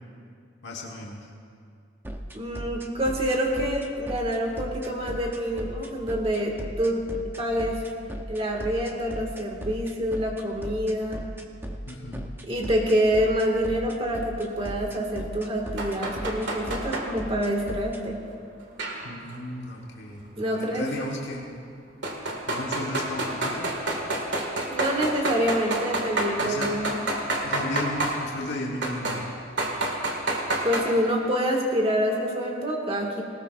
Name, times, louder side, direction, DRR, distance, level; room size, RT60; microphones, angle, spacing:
voice 1, 0.6-1.3 11.9-12.3 19.0-20.3 20.5-21.5 22.5-23.8 26.4-26.7 27.4-29.3, left 1 dB, 70° left, -2 dB, 1.4 m, -34 dB
sound 1, 2.0-18.0, equal, 10° right, 0.7 m, -37 dB
voice 2, 2.3-7.8 8.3-11.2 12.5-18.2 20.4-20.9 24.7-27.0 30.6-33.2, equal, 30° right, 0 dB, 1.9 m, -26 dB
sound 2, 15.8-17.1 18.8-19.4 21.0-21.1 22.0-28.2 28.8-29.2 29.6-30.8, right 2 dB, 75° right, 1.9 m, -28 dB
19.0 x 19.0 x 2.5 m, 2.3 s
head